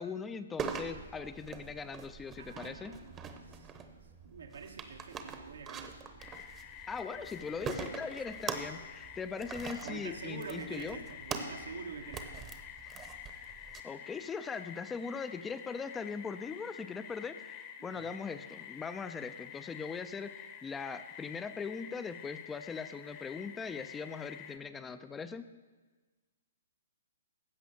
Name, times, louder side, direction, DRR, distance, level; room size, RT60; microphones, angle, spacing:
voice 1, 0.0-2.9 6.9-11.0 13.8-25.6, left 5 dB, 10° left, 11 dB, 0.4 m, -40 dB
sound 1, 0.6-13.8, right 6 dB, 20° right, 0.9 m, -43 dB
voice 2, 2.4-3.7 4.2-6.0 8.2-8.3 9.8-12.5 17.2-17.3 17.8-18.1, right 5 dB, 85° right, 4 dB, 1.5 m, -46 dB
sound 2, 6.2-24.6, left 9 dB, 30° left, 0.9 m, -49 dB
15.5 x 5.6 x 7.0 m, 1.3 s
hypercardioid pair, 145°, 0 cm